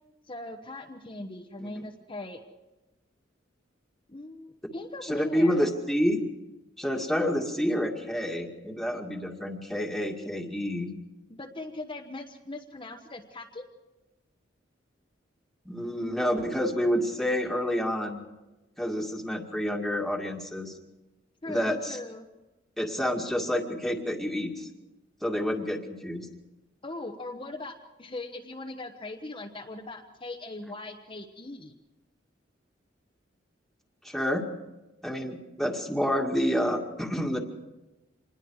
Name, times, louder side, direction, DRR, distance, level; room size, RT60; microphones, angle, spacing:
voice 1, 0.3-2.4 4.1-5.6 11.3-13.7 21.4-22.3 26.8-31.7, left 2 dB, 25° left, 1 dB, 1.2 m, -40 dB
voice 2, 5.0-6.2 6.8-10.9 15.7-18.3 18.8-20.7 21.5-22.0 22.8-24.7 25.2-26.3 34.0-34.4 35.0-37.4, equal, ahead, 2 dB, 2.0 m, -28 dB
26.5 x 21.0 x 4.8 m, 1.1 s
head